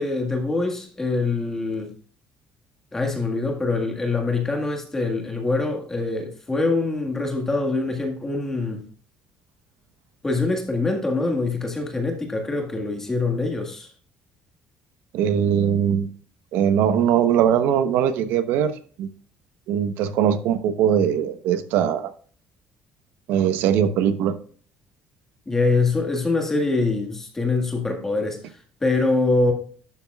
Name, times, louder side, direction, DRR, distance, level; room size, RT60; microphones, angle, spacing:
voice 1, 0.0-1.9 2.9-8.8 10.2-13.9 25.5-28.4 28.8-29.5, left 3 dB, 15° left, 1.7 m, -24 dB
voice 2, 15.1-16.1 16.5-18.7 19.0-19.1 19.7-22.1 23.3-24.3, right 9 dB, 80° right, 0.9 m, -21 dB
12.0 x 7.1 x 2.3 m
cardioid pair, 160°, 4 cm